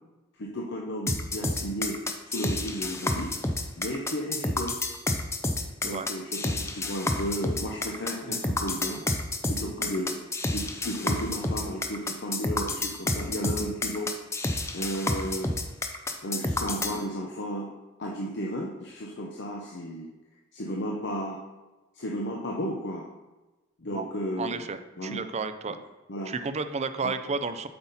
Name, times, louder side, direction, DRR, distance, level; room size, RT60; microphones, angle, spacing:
voice 1, 0.4-2.0 2.3-3.3 3.8-4.8 5.8-9.0 9.5-10.2 10.5-14.1 14.7-15.5 16.2-17.7 18.0-20.1 20.5-21.4 21.9-23.1 23.8-24.7 25.0-25.2 26.1-26.3 27.0-27.1, equal, 60° left, -2 dB, 0.9 m, -33 dB
sound 1, 1.1-17.0, left 2 dB, 15° left, 0.6 m, -29 dB
voice 2, 24.4-25.8 26.3-27.7, right 4 dB, 35° right, 10 dB, 0.5 m, -32 dB
7.8 x 5.7 x 4.1 m, 1.1 s
head